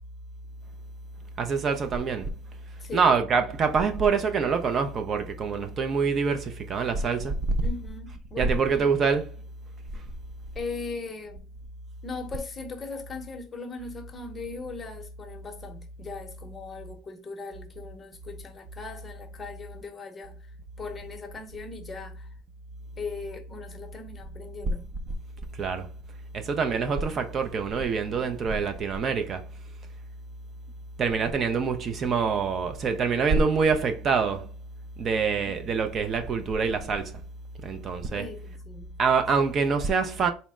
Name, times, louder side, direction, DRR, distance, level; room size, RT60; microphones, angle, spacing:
voice 1, 1.4-2.3 2.9-7.6 8.4-9.3 25.6-25.9 26.3-29.5 31.0-34.5 35.0-37.2 37.6-38.3 39.0-40.3, right 5 dB, 40° right, 0.5 m, -25 dB
voice 2, 2.8-3.1 7.6-9.2 10.5-11.4 12.0-22.3 23.0-24.9 35.4-35.9 38.1-39.0, left 4 dB, 25° left, 0.8 m, -39 dB
4.1 x 2.1 x 3.5 m
supercardioid pair, 115°, 0 cm